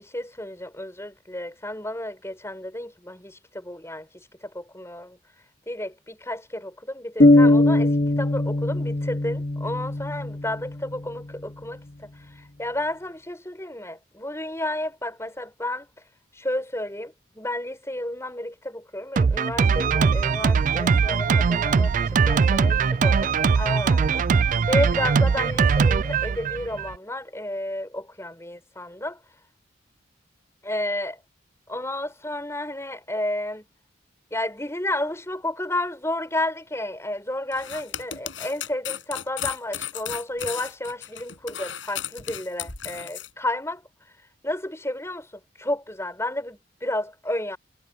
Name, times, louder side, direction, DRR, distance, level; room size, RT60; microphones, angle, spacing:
voice 1, 0.0-5.2 5.7-15.9 16.3-29.2 30.6-31.2 31.7-33.6 34.3-43.8 44.4-45.3 45.6-47.6, left 1 dB, 15° left, 6.9 m, -31 dB
sound 1, 7.2-11.0, left 2 dB, 45° left, 1.0 m, -20 dB
Drum kit, 19.2-27.0, right 5 dB, 40° right, 0.3 m, -21 dB
sound 2, 37.5-43.3, left 10 dB, 75° left, 6.3 m, -34 dB
head